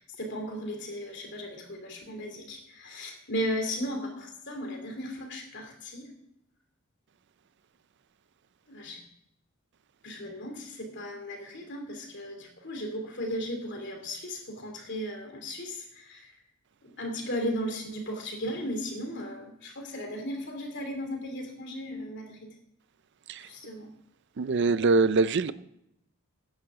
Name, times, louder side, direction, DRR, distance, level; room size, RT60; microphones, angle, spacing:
voice 1, 0.0-6.1 8.7-9.0 10.0-16.3 16.8-22.5 23.4-23.9, equal, 55° left, 3 dB, 2.9 m, -36 dB
voice 2, 24.4-25.5, right 3 dB, 55° right, 16 dB, 0.5 m, -23 dB
15.5 x 10.5 x 3.7 m, 0.77 s
head